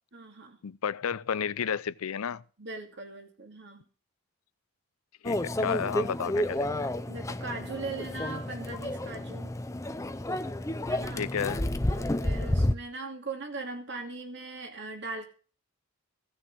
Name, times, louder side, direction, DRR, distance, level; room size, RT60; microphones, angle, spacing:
voice 1, 0.1-0.6 2.6-3.8 7.1-9.5 10.9-11.2 11.9-15.2, right 3 dB, 55° right, 2.6 m, -40 dB
voice 2, 0.6-2.4 5.2-6.9 11.2-11.7, left 7 dB, 80° left, 0.5 m, -32 dB
Microwave oven, 5.2-12.7, left 1 dB, 15° left, 0.6 m, -30 dB
16.5 x 7.0 x 6.1 m
head